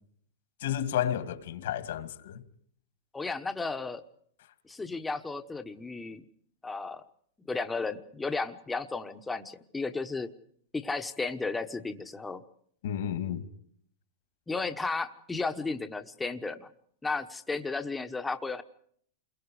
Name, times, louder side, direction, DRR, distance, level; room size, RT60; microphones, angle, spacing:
voice 1, 0.6-2.4 12.8-13.4, left 10 dB, 70° left, 2.4 m, -31 dB
voice 2, 3.1-4.0 4.7-6.2 6.6-7.0 7.5-10.3 10.7-12.4 14.5-16.7 17.0-18.6, left 3 dB, 10° left, 1.1 m, -34 dB
29.0 x 22.5 x 4.9 m
supercardioid pair, 155°, 0 cm